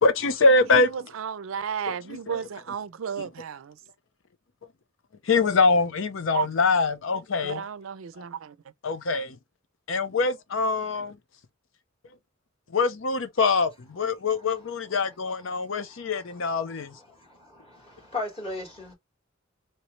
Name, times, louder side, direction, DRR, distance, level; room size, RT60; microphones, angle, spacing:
voice 1, 0.0-0.9 2.3-2.4 5.3-7.6 8.8-9.4 9.9-11.1 12.7-16.9, left 3 dB, 70° left, 0.6 m, -24 dB
voice 2, 0.7-3.8 6.3-6.5 7.4-8.6, right 7 dB, 85° right, 0.4 m, -33 dB
voice 3, 15.5-16.1 17.1-18.9, left 2 dB, 30° left, 1.5 m, -37 dB
3.1 x 2.9 x 3.0 m
head